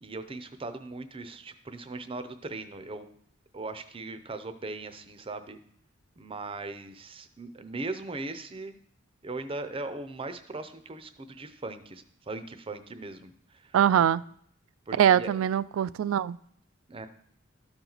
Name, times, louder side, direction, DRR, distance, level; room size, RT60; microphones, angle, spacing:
voice 1, 0.0-3.2 3.5-5.6 6.2-8.7 9.2-14.1 14.9-15.3 16.9-17.1, right 2 dB, 25° right, 0.6 m, -39 dB
voice 2, 13.7-14.2 15.0-16.4, right 9 dB, 80° right, 0.3 m, -23 dB
13.0 x 4.4 x 3.9 m
head